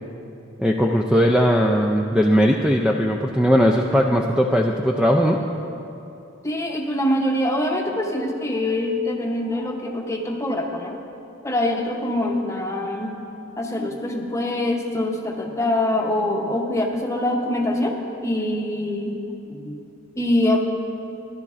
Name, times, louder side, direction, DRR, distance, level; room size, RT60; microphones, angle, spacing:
voice 1, 0.6-5.4, equal, 5° right, 0 dB, 0.4 m, -18 dB
voice 2, 6.4-11.0 11.4-13.1 13.6-17.9 18.2-19.2 19.5-19.8 20.2-20.6, left 1 dB, 15° left, 1 dB, 0.8 m, -24 dB
16.0 x 11.0 x 2.5 m, 2.8 s
head